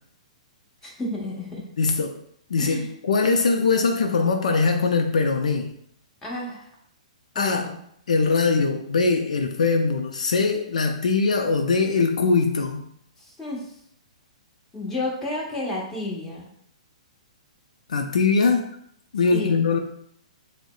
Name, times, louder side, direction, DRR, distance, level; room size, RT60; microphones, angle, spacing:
voice 1, 0.8-1.6 2.6-2.9 6.2-6.7 7.3-7.7 13.2-13.7 14.7-16.5 19.3-19.7, left 2 dB, 10° left, -5 dB, 1.2 m, -31 dB
voice 2, 1.8-2.2 2.5-5.7 7.4-7.7 8.1-12.8 17.9-18.7 19.1-19.8, left 4 dB, 75° left, 4 dB, 0.4 m, -21 dB
6.1 x 2.1 x 2.3 m, 0.70 s
hypercardioid pair, 125°, 4 cm